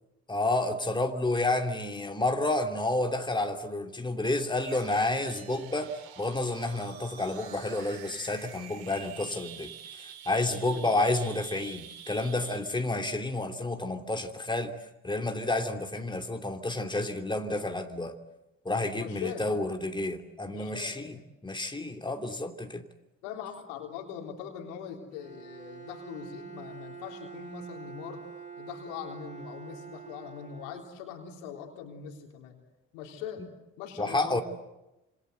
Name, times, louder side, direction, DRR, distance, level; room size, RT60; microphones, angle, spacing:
voice 1, 0.3-14.8 15.0-18.1 18.6-21.2 21.4-22.8 34.0-34.4, left 2 dB, 10° left, 2.8 m, -30 dB
sound 1, 4.5-12.8, right 9 dB, 70° right, 2.7 m, -47 dB
voice 2, 10.5-10.8 18.9-19.5 20.5-21.2 23.2-28.3 28.6-32.6 32.9-33.5 33.8-34.4, left 8 dB, 80° left, 3.8 m, -41 dB
Bowed string instrument, 25.1-31.3, right 6 dB, 20° right, 6.5 m, -46 dB
26.5 x 26.0 x 8.0 m
hypercardioid pair, 45°, 38 cm